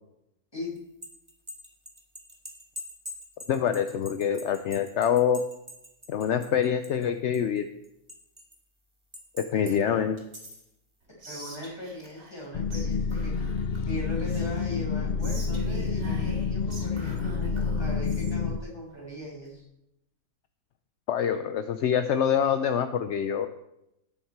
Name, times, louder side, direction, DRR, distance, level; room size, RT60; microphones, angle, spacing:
sound 1, 0.8-7.1 7.3-8.5 9.1-9.7 10.2-10.7, left 1 dB, 20° right, 2.1 m, -44 dB
voice 1, 3.5-5.4 6.1-7.7 9.4-10.2 21.1-23.5, left 8 dB, 60° left, 9 dB, 0.8 m, -25 dB
voice 2, 9.6-10.0 11.2-13.3 13.9-19.7, left 1 dB, 15° left, -5 dB, 6.2 m, -39 dB
Whispering, 11.2-12.4 12.7-12.9 13.1-14.6 15.2-18.4, equal, 60° right, 3.2 m, -43 dB
sound 2, 12.5-18.6, left 5 dB, 80° left, 0.4 m, -28 dB
18.5 x 7.2 x 4.7 m, 0.85 s
omnidirectional pair, 1.6 m